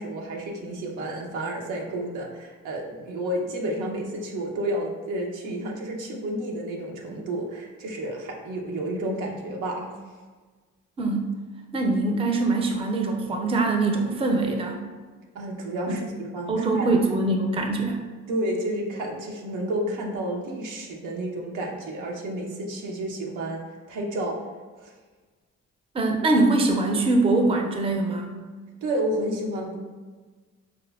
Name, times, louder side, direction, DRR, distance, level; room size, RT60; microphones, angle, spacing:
voice 1, 0.0-10.0 15.3-16.9 18.3-23.6 23.9-24.4 24.8-24.9 28.8-29.8, right 1 dB, 90° right, 0 dB, 0.7 m, -31 dB
voice 2, 11.0-11.3 11.7-14.8 15.9-16.0 16.5-18.0 25.9-28.3, right 2 dB, 20° right, 3 dB, 0.4 m, -23 dB
4.9 x 2.0 x 2.2 m, 1.4 s
cardioid pair, 90°, 30 cm